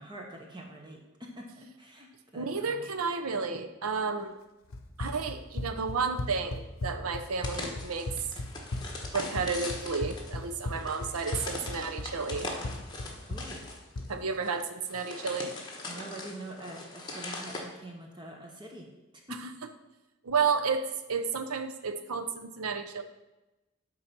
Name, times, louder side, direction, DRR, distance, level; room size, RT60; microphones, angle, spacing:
voice 1, 0.0-2.9 13.3-13.7 15.9-18.9 19.1-19.4, right 1 dB, 20° right, 0 dB, 0.8 m, -45 dB
voice 2, 2.3-4.4 5.0-8.1 9.1-12.5 14.1-15.5 19.3-19.5 20.2-20.8 21.1-23.0, right 5 dB, 90° right, 8 dB, 0.7 m, -32 dB
Run, 4.7-14.2, left 2 dB, 70° left, 0.7 m, -37 dB
sound 1, 7.4-17.6, left 2 dB, 20° left, 1.1 m, -41 dB
8.9 x 4.0 x 5.9 m, 1.0 s
head